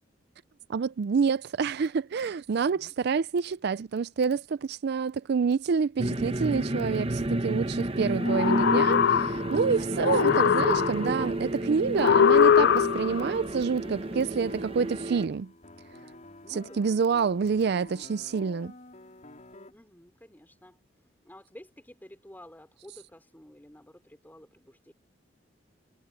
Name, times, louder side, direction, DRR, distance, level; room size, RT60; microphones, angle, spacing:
voice 1, 0.7-15.5 16.6-18.7, right 5 dB, 60° right, 0.4 m, -28 dB
voice 2, 2.6-3.0 9.7-10.1 16.2-17.0 19.7-20.8 21.2-24.9, left 1 dB, 10° left, 5.0 m, -52 dB
sound 1, 6.0-15.3, right 1 dB, 30° right, 1.2 m, -31 dB
sound 2, 7.8-19.7, left 1 dB, 40° left, 4.7 m, -50 dB
sound 3, 8.2-9.6 10.0-11.2 12.0-13.3, left 8 dB, 60° left, 0.4 m, -22 dB
head